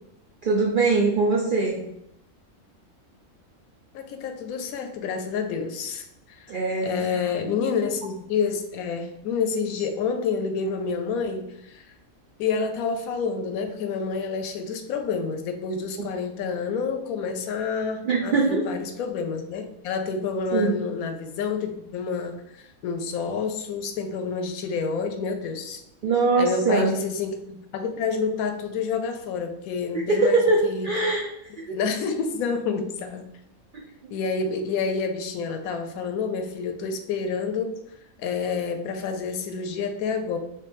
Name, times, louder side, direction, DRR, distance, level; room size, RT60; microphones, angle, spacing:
voice 1, 0.4-1.8 6.5-7.3 16.0-16.1 18.0-18.6 20.5-20.7 26.0-27.0 30.1-31.3 31.6-31.8 33.7-33.8, right 3 dB, 75° right, -1 dB, 0.4 m, -22 dB
voice 2, 3.9-6.6 6.8-11.9 12.4-25.8 26.4-30.9 31.7-33.2 34.1-37.8 38.2-40.4, left 5 dB, 85° left, 7 dB, 1.0 m, -28 dB
3.2 x 3.1 x 3.3 m, 0.80 s
omnidirectional pair, 1.5 m